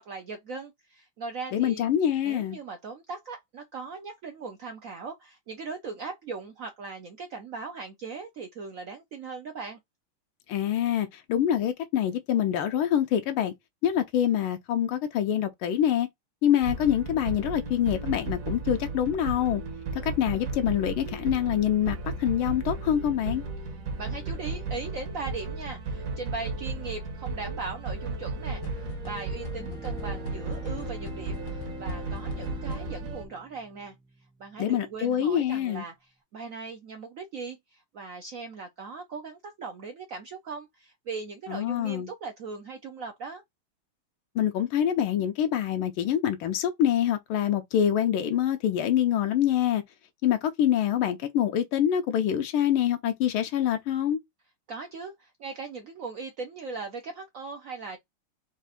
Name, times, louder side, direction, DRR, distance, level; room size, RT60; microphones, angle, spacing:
voice 1, 0.0-1.8 2.2-9.8 24.0-33.9 34.4-43.4 54.7-58.0, right 4 dB, 75° right, 0.7 m, -39 dB
voice 2, 1.5-2.6 10.5-13.5 13.8-16.1 16.4-19.6 20.0-23.4 34.6-35.8 41.5-42.1 44.3-49.8 50.2-54.2, left 10 dB, 85° left, 1.5 m, -25 dB
sound 1, 16.6-33.2, right 3 dB, 50° right, 1.1 m, -34 dB
sound 2, 28.6-33.2, left 9 dB, 65° left, 1.1 m, -45 dB
Bowed string instrument, 29.5-34.5, right 2 dB, 5° right, 0.6 m, -45 dB
4.5 x 2.5 x 4.1 m
omnidirectional pair, 2.3 m